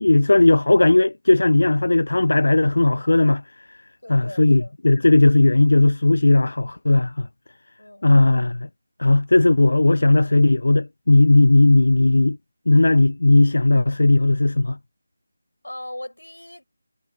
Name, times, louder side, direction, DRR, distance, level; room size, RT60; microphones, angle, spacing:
voice 1, 0.0-3.8 4.1-7.3 8.0-8.7 9.0-12.4 12.7-14.8, left 2 dB, 60° left, 0.5 m, -17 dB
voice 2, 4.0-4.7 7.8-8.3 15.6-16.6, left 1 dB, 75° left, 7.1 m, -38 dB
figure-of-eight pair, 160°, 0 cm